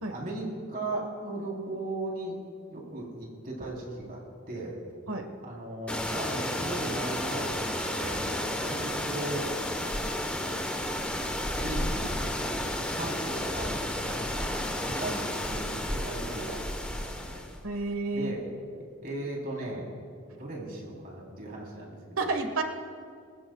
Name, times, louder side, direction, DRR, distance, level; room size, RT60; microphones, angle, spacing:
voice 1, 0.1-2.4 2.7-4.2 4.5-4.8 5.4-8.2 8.6-9.5 11.5-12.2 12.9-15.2 15.5-17.4 18.1-18.4 19.0-19.9 20.3-22.3, right 2 dB, 40° right, -3 dB, 3.6 m, -37 dB
sound 1, 5.9-17.6, left 1 dB, 5° left, 1.1 m, -32 dB
voice 2, 17.6-18.3 22.2-22.6, right 3 dB, 75° right, 6 dB, 1.4 m, -30 dB
26.0 x 15.0 x 2.4 m, 2.2 s
head